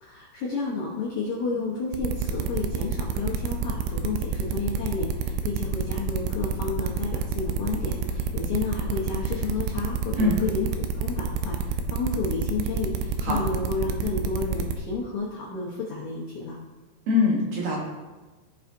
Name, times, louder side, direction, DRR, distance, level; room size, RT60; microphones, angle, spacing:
voice 1, 0.0-10.7 10.9-16.6, left 4 dB, 90° left, -4 dB, 1.6 m, -31 dB
sound 1, 1.9-14.8, right 6 dB, 85° right, 3.0 m, -28 dB
voice 2, 17.1-17.8, left 3 dB, 60° right, -4 dB, 3.1 m, -23 dB
16.5 x 5.7 x 2.8 m, 1.3 s
omnidirectional pair, 5.5 m